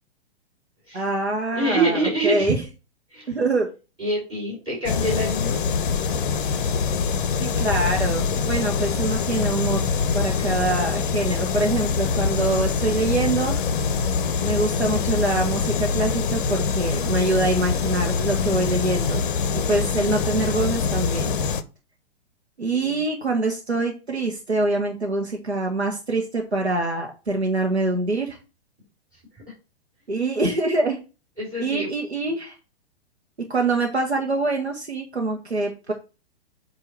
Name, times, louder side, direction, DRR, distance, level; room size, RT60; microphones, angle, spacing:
voice 1, 0.9-2.6 3.3-3.7 7.4-9.8 10.1-13.6 14.4-19.3 19.7-21.3 22.6-28.4 30.1-31.0 31.6-32.5 33.5-35.9, right 2 dB, 85° right, 1 dB, 1.1 m, -24 dB
voice 2, 1.5-2.5 3.1-3.3 4.0-5.6 22.8-23.0 31.4-31.9, right 2 dB, 15° right, -5 dB, 3.4 m, -25 dB
sound 1, 4.9-21.6, left 5 dB, 50° left, 0.6 m, -24 dB
7.7 x 2.8 x 4.4 m, 0.32 s
figure-of-eight pair, 115°, 32 cm